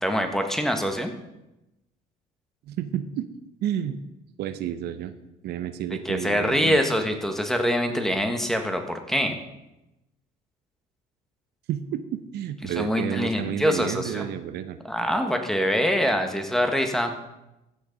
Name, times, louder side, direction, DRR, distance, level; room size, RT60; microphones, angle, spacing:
voice 1, 0.0-1.1 6.0-9.4 12.6-14.3 14.9-17.1, equal, ahead, 5 dB, 1.5 m, -24 dB
voice 2, 2.7-3.3 3.6-4.0 4.4-5.1 5.4-6.8 11.7-14.8, right 10 dB, 75° right, 11 dB, 0.8 m, -30 dB
15.0 x 6.5 x 5.3 m, 0.93 s
cardioid pair, 110°, 17 cm